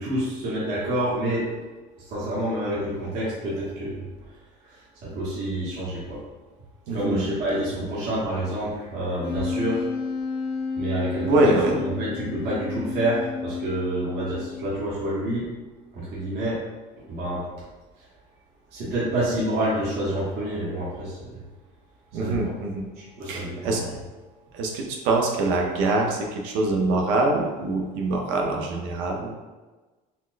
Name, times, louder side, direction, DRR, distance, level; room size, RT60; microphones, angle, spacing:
voice 1, 0.0-1.5 2.0-4.1 4.7-6.2 6.9-9.8 10.8-15.5 15.9-16.6 17.1-17.5 18.7-21.4 22.2-22.5 23.0-23.9, right 1 dB, 60° right, -8 dB, 1.0 m, -28 dB
voice 2, 6.9-7.3 11.2-11.7 22.1-22.9 23.2-23.8 24.5-29.3, right 2 dB, 85° right, 1 dB, 0.6 m, -24 dB
Wind instrument woodwind instrument, 9.2-14.9, left 5 dB, 30° left, 0.4 m, -31 dB
4.1 x 2.1 x 2.5 m, 1.2 s
cardioid pair, 120°, 19 cm